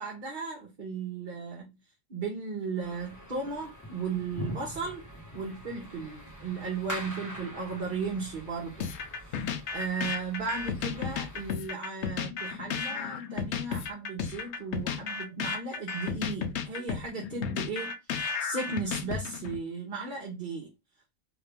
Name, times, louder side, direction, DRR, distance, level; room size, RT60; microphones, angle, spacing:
voice 1, 0.0-1.7 2.1-5.1 5.3-8.9 9.2-9.5 9.7-20.7, right 4 dB, 50° right, 1.0 m, -36 dB
sound 1, 2.8-11.5, equal, 15° left, 1.1 m, -44 dB
sound 2, 8.8-19.6, left 6 dB, 90° left, 0.9 m, -34 dB
2.9 x 2.5 x 3.2 m
omnidirectional pair, 1.1 m